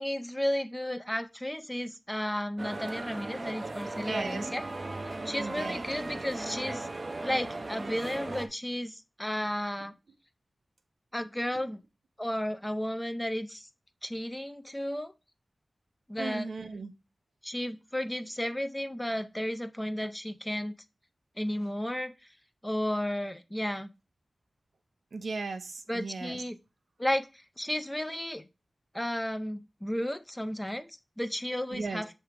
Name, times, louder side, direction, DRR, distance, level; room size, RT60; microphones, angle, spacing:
voice 1, 0.0-4.6 5.3-6.9 7.2-9.9 11.1-11.8 12.2-13.7 14.0-15.1 16.1-16.5 17.4-20.7 21.4-22.1 22.6-23.9 25.9-26.6 27.0-28.5 28.9-30.9 31.2-32.1, equal, 10° left, 10 dB, 0.5 m, -33 dB
sound 1, 2.6-8.5, right 2 dB, 45° right, 0.6 m, -37 dB
voice 2, 4.0-4.5 5.3-5.9 11.5-11.6 16.2-16.9 25.1-26.4 31.7-32.0, right 3 dB, 80° right, 7 dB, 0.8 m, -36 dB
7.0 x 3.3 x 4.8 m, 0.28 s
wide cardioid pair, 100°, 0 cm